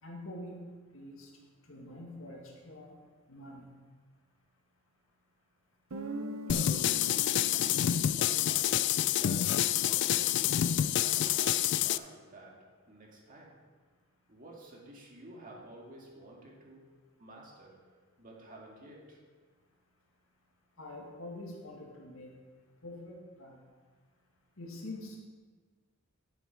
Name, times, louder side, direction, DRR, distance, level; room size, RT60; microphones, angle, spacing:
voice 1, 0.0-0.6 0.9-1.3 1.7-3.0 3.3-3.7 20.8-22.3 22.8-23.6 24.6-25.2, left 1 dB, 75° left, -1 dB, 2.0 m, -45 dB
Guitar, 5.9-10.5, right 1 dB, 80° right, 0.8 m, -44 dB
sound 1, 6.5-12.0, left 11 dB, 60° left, 0.3 m, -28 dB
voice 2, 6.5-13.6 14.3-17.8 18.2-19.2, right 1 dB, 40° right, -2 dB, 2.0 m, -51 dB
10.5 x 7.1 x 4.6 m, 1.5 s
head